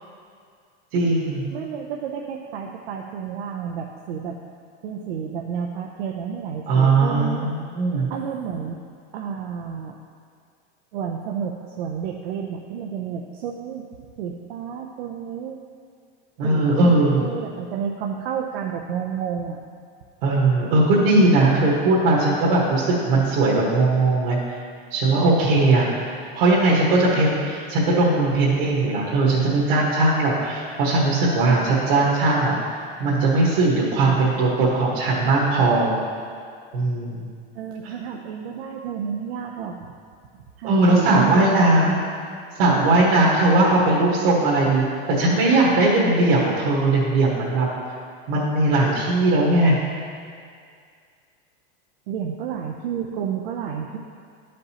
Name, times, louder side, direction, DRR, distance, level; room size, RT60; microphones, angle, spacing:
voice 1, 0.9-1.4 6.7-8.1 16.4-17.2 20.2-24.4 24.9-25.9 26.3-35.9 36.7-37.2 37.8-37.9 40.6-42.0 42.6-44.8 45.2-47.7 48.3-49.7, right 2 dB, 70° right, -7 dB, 1.5 m, -19 dB
voice 2, 1.5-4.4 4.8-7.5 8.1-8.8 9.1-10.0 10.9-13.9 14.2-15.6 16.4-19.6 37.5-39.9 40.6-41.4 41.7-41.8 52.1-54.0, right 7 dB, 90° right, 0 dB, 0.6 m, -31 dB
11.5 x 5.2 x 2.9 m, 2.2 s
supercardioid pair, 155°, 29 cm